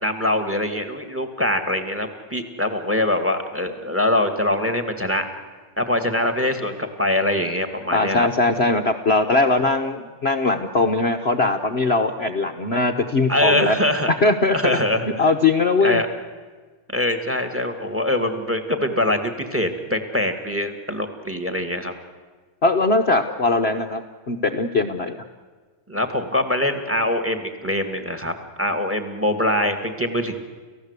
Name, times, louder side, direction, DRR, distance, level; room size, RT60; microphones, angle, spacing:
voice 1, 0.0-5.3 5.8-8.3 13.3-14.1 14.5-15.3 15.8-16.1 16.9-21.9 25.9-30.3, left 1 dB, 5° right, 8 dB, 1.9 m, -23 dB
voice 2, 7.9-13.8 14.2-14.8 15.2-16.0 22.6-24.0 24.3-25.2, left 3 dB, 45° left, 5 dB, 0.9 m, -20 dB
30.0 x 15.5 x 8.2 m, 1.4 s
omnidirectional pair, 2.1 m